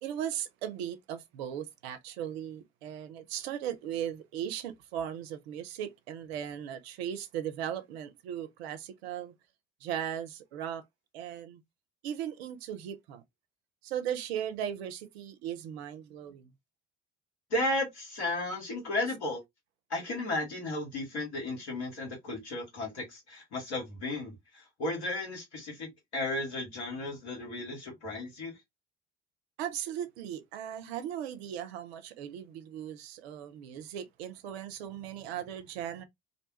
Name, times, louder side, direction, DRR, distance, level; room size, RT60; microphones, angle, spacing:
voice 1, 0.0-9.3 9.8-10.8 11.1-11.6 12.0-13.2 13.8-16.5 29.6-36.0, right 10 dB, 70° right, 0.6 m, -37 dB
voice 2, 17.5-19.4 19.9-28.6, left 2 dB, 80° left, 1.3 m, -34 dB
2.6 x 2.2 x 2.7 m
figure-of-eight pair, 55°, 33 cm